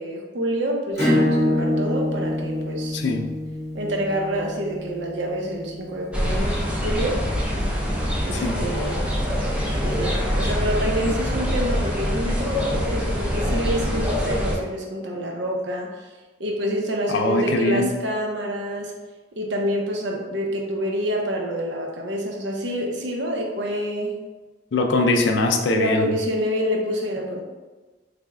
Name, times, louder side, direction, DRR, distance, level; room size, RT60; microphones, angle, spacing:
voice 1, 0.0-3.0 3.7-7.2 8.2-9.2 9.8-16.1 16.4-19.0 19.4-24.2 25.7-27.4, equal, 75° right, 0 dB, 0.6 m, -27 dB
Acoustic guitar / Strum, 1.0-6.2, left 1 dB, 15° left, 0.9 m, -25 dB
voice 2, 2.9-3.3 8.3-8.6 17.1-17.9 24.7-26.1, left 2 dB, 75° left, 4 dB, 0.4 m, -22 dB
sound 1, 6.1-14.6, equal, 5° right, 0.4 m, -24 dB
3.3 x 2.1 x 3.5 m, 1.3 s
head